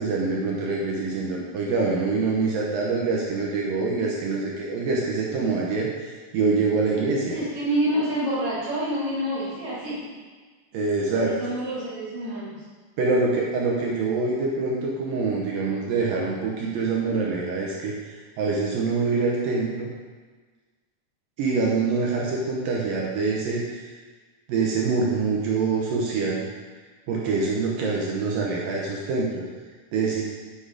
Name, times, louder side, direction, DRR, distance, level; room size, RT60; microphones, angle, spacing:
voice 1, 0.0-7.4 10.7-11.4 13.0-19.9 21.4-23.9 24.5-26.5 27.1-29.4 29.9-30.2, right 4 dB, 70° right, -3 dB, 2.3 m, -25 dB
voice 2, 7.3-10.0 11.1-12.5, right 1 dB, 50° right, -7 dB, 2.8 m, -27 dB
7.8 x 6.5 x 5.1 m, 1.4 s
omnidirectional pair, 4.8 m